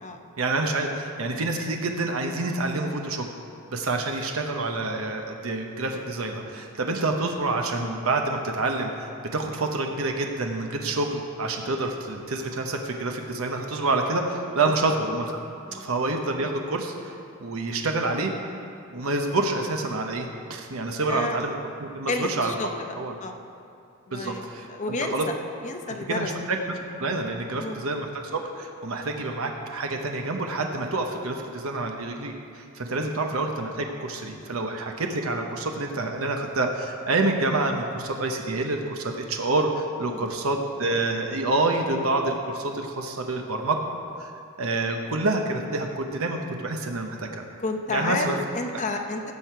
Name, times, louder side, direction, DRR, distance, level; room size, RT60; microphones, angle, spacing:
voice 1, 0.4-3.3 3.7-15.4 15.7-17.1 17.4-18.3 18.9-22.5 23.0-23.1 24.1-25.3 26.1-26.6 27.0-43.8 44.2-44.3 44.6-47.4 47.9-48.4 48.7-48.8, right 2 dB, 90° right, 3 dB, 0.9 m, -27 dB
voice 2, 21.1-21.4 22.1-22.8 23.2-23.3 24.1-25.3 25.6-26.3 27.6-27.9 32.9-33.0 40.1-40.3 47.6-49.2, left 3 dB, 35° left, 4 dB, 0.8 m, -31 dB
16.5 x 6.6 x 4.6 m, 2.5 s
head